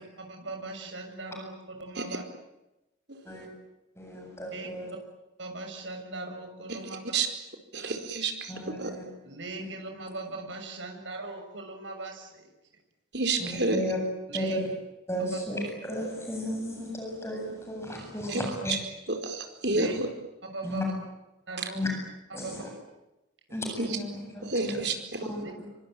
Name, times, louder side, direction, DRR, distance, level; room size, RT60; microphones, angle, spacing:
voice 1, 0.0-2.2 4.5-4.7 5.4-7.0 9.2-12.5 14.3-14.6 15.2-15.4 19.7-19.9 20.4-20.9 21.5-21.8 22.3-22.6 25.3-25.5, right 2 dB, 80° right, 4 dB, 6.7 m, -39 dB
voice 2, 4.0-4.9 8.5-9.0 13.4-14.0 14.3-14.6 15.1-18.7 19.8-19.9 20.6-20.8 21.7-21.9 22.3-22.7 23.5-24.8 25.2-25.7, equal, 15° left, 1 dB, 7.8 m, -34 dB
voice 3, 7.7-8.9 13.1-13.8 18.3-18.4 19.1-19.9 23.8-24.0 24.4-25.3, right 3 dB, 60° right, 6 dB, 4.7 m, -29 dB
26.5 x 24.5 x 9.1 m, 0.97 s
head